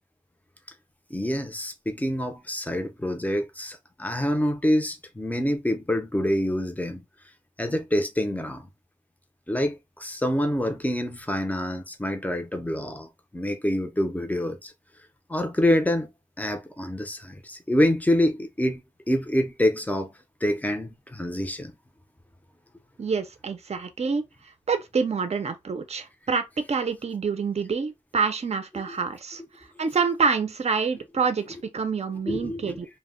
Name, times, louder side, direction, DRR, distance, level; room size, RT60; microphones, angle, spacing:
voice 1, 1.1-7.0 7.6-8.7 9.5-14.7 15.3-16.1 16.4-18.8 19.1-20.1 20.4-21.7 28.8-29.0 29.8-29.9 32.3-32.8, left 1 dB, 10° left, 0.5 m, -26 dB
voice 2, 23.0-24.2 24.7-32.9, right 5 dB, 50° right, 0.5 m, -27 dB
2.1 x 2.0 x 3.6 m
wide cardioid pair, 95°, 14 cm